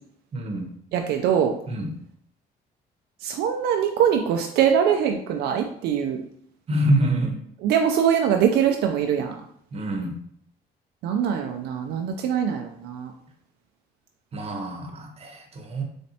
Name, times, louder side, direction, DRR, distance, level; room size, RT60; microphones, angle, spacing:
voice 1, 0.3-0.7 1.7-1.9 6.7-7.4 9.7-10.2 14.3-15.8, right 1 dB, 35° right, 3 dB, 0.9 m, -26 dB
voice 2, 0.9-1.6 3.2-6.2 7.6-9.4 11.0-13.1, right 8 dB, 75° right, 3 dB, 0.4 m, -23 dB
4.2 x 3.2 x 2.8 m, 0.67 s
cardioid pair, 110°, 17 cm